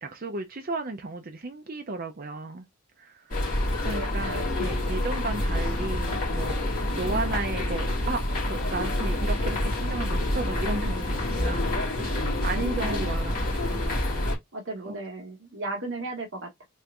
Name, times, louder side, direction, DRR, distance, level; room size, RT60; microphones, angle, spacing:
voice 1, 0.0-2.7 3.0-3.4 3.8-6.6 6.9-13.9 14.8-15.0, right 3 dB, 40° right, 0.5 m, -34 dB
sound 1, 3.3-14.4, left 1 dB, 40° left, 1.9 m, -27 dB
voice 2, 12.4-13.2 14.5-16.6, right 2 dB, 55° right, 1.2 m, -36 dB
4.4 x 3.3 x 2.4 m
head